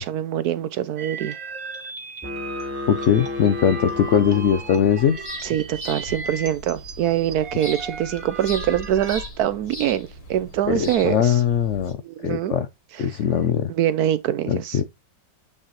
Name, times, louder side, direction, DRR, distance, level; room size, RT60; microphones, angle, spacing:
voice 1, 0.0-1.4 5.4-11.4 12.0-12.6 12.9-13.1 13.7-14.8, right 11 dB, 70° right, 1.0 m, -24 dB
sound 1, 1.0-9.3, right 4 dB, 85° right, 2.6 m, -36 dB
sound 2, 2.2-5.2, left 2 dB, 15° right, 0.5 m, -33 dB
voice 2, 2.6-5.2 10.7-12.0 12.2-12.7 13.0-13.7 14.5-14.8, left 8 dB, 70° left, 0.7 m, -21 dB
sound 3, 3.8-11.9, left 1 dB, 85° left, 4.6 m, -39 dB
8.6 x 4.3 x 3.0 m
omnidirectional pair, 1.9 m